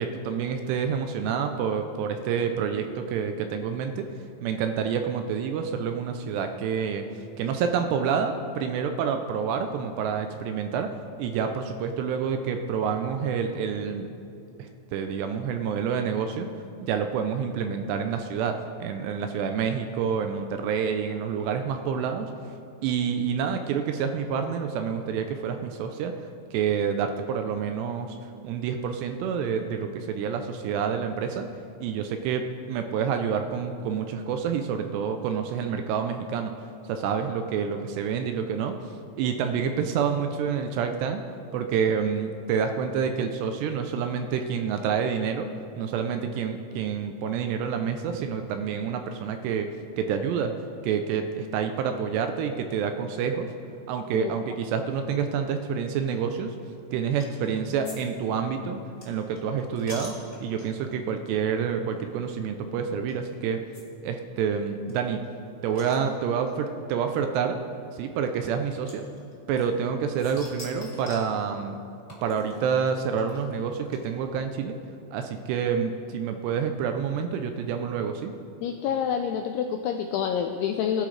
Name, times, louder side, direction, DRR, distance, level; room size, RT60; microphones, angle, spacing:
voice 1, 0.0-4.1 4.4-14.1 14.6-16.5 16.8-22.3 22.8-26.1 26.5-31.5 31.8-38.8 39.2-41.2 41.5-45.5 45.8-49.7 50.0-50.5 50.8-53.5 53.9-56.6 56.9-60.1 60.4-63.6 64.0-65.3 65.6-67.6 67.9-69.0 69.5-71.8 72.2-74.8 75.1-78.3, right 7 dB, 80° right, 6 dB, 2.6 m, -28 dB
sound 1, 57.2-57.5 57.8-58.0 58.2-60.9 61.5-61.7 62.0-62.1 63.1-63.2 63.7-63.8 64.1-64.2 64.4-64.5 64.9-66.5 67.4-67.5 68.9-69.9 70.2-71.3 72.1-74.4, left 1 dB, 20° left, 1.6 m, -45 dB
voice 2, 78.6-81.1, left 8 dB, 85° left, 5 dB, 2.3 m, -27 dB
21.0 x 11.5 x 3.3 m, 2.6 s
omnidirectional pair, 5.2 m